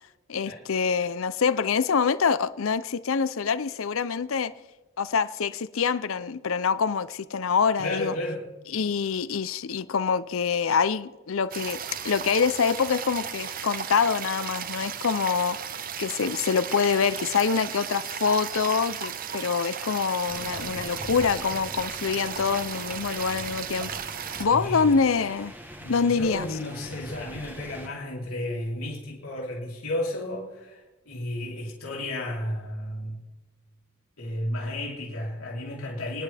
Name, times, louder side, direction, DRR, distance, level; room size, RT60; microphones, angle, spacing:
voice 1, 0.3-4.5 5.0-8.1 8.7-15.6 16.0-24.0 24.4-25.5 25.9-26.5, left 5 dB, 70° left, 0.6 m, -25 dB
voice 2, 7.8-8.5 24.4-24.9 25.8-33.3 34.2-36.2, left 1 dB, 85° left, 3.6 m, -33 dB
sound 1, 11.5-24.5, right 8 dB, 40° right, 0.6 m, -35 dB
sound 2, 20.3-27.9, equal, 10° right, 1.1 m, -43 dB
29.5 x 10.5 x 3.4 m
head